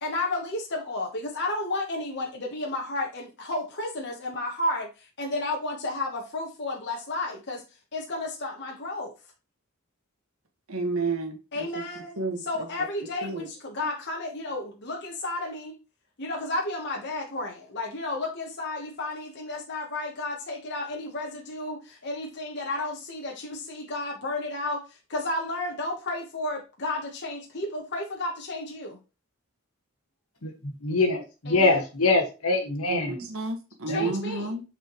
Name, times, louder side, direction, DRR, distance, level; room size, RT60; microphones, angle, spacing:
voice 1, 0.0-7.6 7.9-9.1 11.5-15.8 16.2-29.0 31.4-31.8 33.9-34.5, left 2 dB, 55° left, 1.2 m, -32 dB
voice 2, 10.7-11.6 12.2-12.4 13.2-13.4 32.9-34.6, right 3 dB, 80° right, 1.5 m, -30 dB
voice 3, 30.8-33.2 33.9-34.0, left 3 dB, 90° left, 1.7 m, -24 dB
8.1 x 4.3 x 3.1 m
head